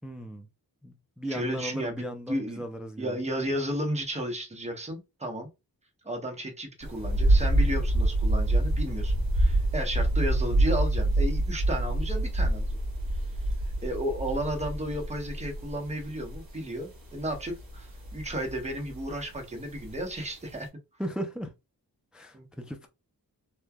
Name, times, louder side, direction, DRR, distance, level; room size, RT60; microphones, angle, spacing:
voice 1, 0.0-0.5 0.8-3.2 21.0-21.5 22.1-22.9, equal, 5° right, 0.3 m, -37 dB
voice 2, 1.3-2.6 3.0-5.5 6.0-12.8 13.8-20.7 22.3-22.5, equal, 20° right, 0.9 m, -33 dB
sound 1, 6.8-20.6, right 1 dB, 70° right, 1.3 m, -27 dB
3.2 x 2.2 x 2.2 m
wide cardioid pair, 80°, 37 cm